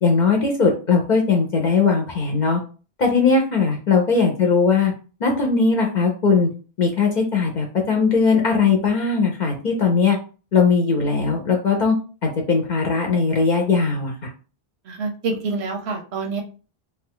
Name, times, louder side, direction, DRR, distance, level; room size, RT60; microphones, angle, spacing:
voice 1, 0.0-2.6 3.0-4.9 5.2-6.5 6.8-10.2 10.5-11.9 12.2-14.1, left 4 dB, 50° left, 0 dB, 0.7 m, -19 dB
voice 2, 14.8-16.4, right 3 dB, 90° right, 3 dB, 1.0 m, -27 dB
2.8 x 2.3 x 3.5 m, 0.36 s
omnidirectional pair, 1.1 m